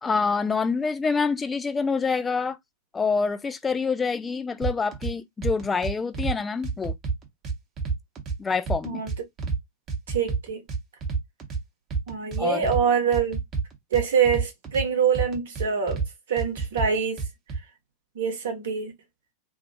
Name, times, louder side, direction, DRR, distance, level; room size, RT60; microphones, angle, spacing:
voice 1, 0.0-2.6 2.9-6.9 8.4-9.0 12.4-12.7, left 5 dB, 15° left, 0.3 m, -26 dB
sound 1, 4.6-5.1 5.4-6.3 6.6-8.4 8.7-9.6 9.9-11.6 11.9-12.8 13.1-14.8 15.1-16.1 16.4-17.6, right 5 dB, 30° right, 0.8 m, -28 dB
voice 2, 10.1-10.6 12.1-13.4 13.9-16.0 16.3-17.2 18.1-18.9, right 7 dB, 60° right, 0.9 m, -25 dB
2.4 x 2.0 x 2.7 m
figure-of-eight pair, 90°, 0 cm